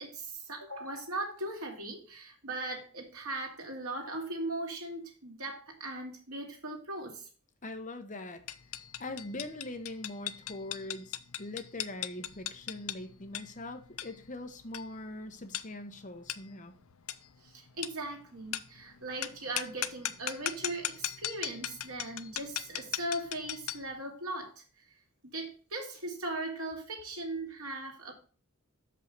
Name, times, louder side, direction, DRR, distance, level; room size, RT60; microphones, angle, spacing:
voice 1, 0.0-7.3 17.4-24.6 25.3-28.1, right 2 dB, 75° right, 1 dB, 2.5 m, -39 dB
voice 2, 7.6-8.4 9.0-16.7, left 2 dB, 35° left, 7 dB, 1.0 m, -42 dB
sound 1, 8.5-23.9, left 12 dB, 75° left, 0.6 m, -39 dB
6.3 x 5.5 x 6.7 m, 0.39 s
head